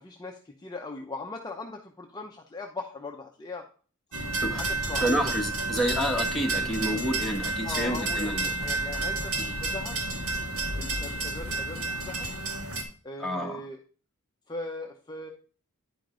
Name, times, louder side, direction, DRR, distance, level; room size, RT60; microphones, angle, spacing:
voice 1, 0.0-3.6 4.6-5.3 7.1-7.3 7.6-10.1 10.7-12.3 13.0-13.8 14.5-15.3, left 3 dB, 20° left, 1 dB, 0.7 m, -39 dB
sound 1, 4.1-12.8, right 2 dB, 70° right, 2.0 m, -30 dB
voice 2, 5.0-8.5 9.4-9.5 13.2-13.6, equal, ahead, -1 dB, 1.4 m, -29 dB
10.0 x 5.3 x 3.8 m, 0.41 s
head